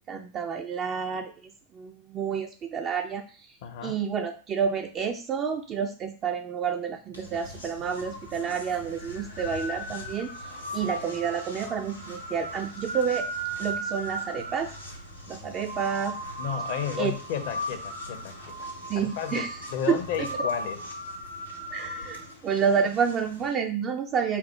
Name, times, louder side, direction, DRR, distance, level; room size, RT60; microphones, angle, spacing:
voice 1, 0.1-1.3 1.7-3.6 3.8-10.3 10.7-13.3 13.6-14.7 15.3-16.2 17.0-17.1 18.9-19.5 19.9-20.3 21.7-24.4, right 7 dB, 30° right, 4 dB, 0.4 m, -29 dB
voice 2, 3.6-4.0 16.4-18.7 19.0-20.8, left 9 dB, 50° left, 9 dB, 0.6 m, -33 dB
sound 1, 7.1-23.5, right 1 dB, 80° left, 1.6 m, -37 dB
4.5 x 2.0 x 4.4 m, 0.40 s
figure-of-eight pair, 90°, 0 cm